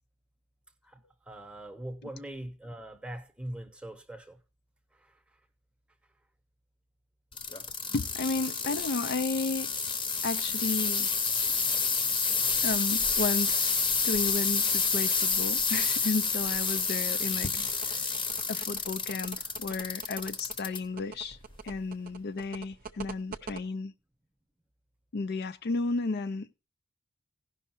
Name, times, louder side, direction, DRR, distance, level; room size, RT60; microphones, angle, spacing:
voice 1, 1.3-4.4 5.0-5.2 23.4-23.6, right 1 dB, 5° right, 0.9 m, -42 dB
sound 1, 7.3-20.8 21.3-21.8 22.4-22.5, left 5 dB, 25° left, 0.9 m, -29 dB
voice 2, 7.9-9.7 10.2-11.1 12.6-13.7 14.0-17.5 17.9-18.0 18.5-21.4 21.6-23.9 25.1-26.5, left 3 dB, 55° left, 0.5 m, -33 dB
sound 2, 17.7-23.6, right 5 dB, 45° right, 0.7 m, -43 dB
16.0 x 5.6 x 4.4 m
head